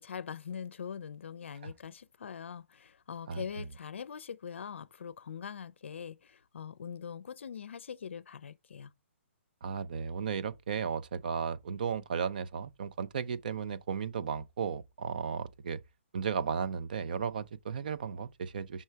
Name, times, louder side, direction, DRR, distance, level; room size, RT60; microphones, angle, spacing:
voice 1, 0.0-8.9, left 7 dB, 65° left, 0.5 m, -42 dB
voice 2, 9.6-15.8 16.1-18.8, right 6 dB, 40° right, 0.5 m, -35 dB
5.5 x 4.7 x 5.6 m
hypercardioid pair, 175°, 7 cm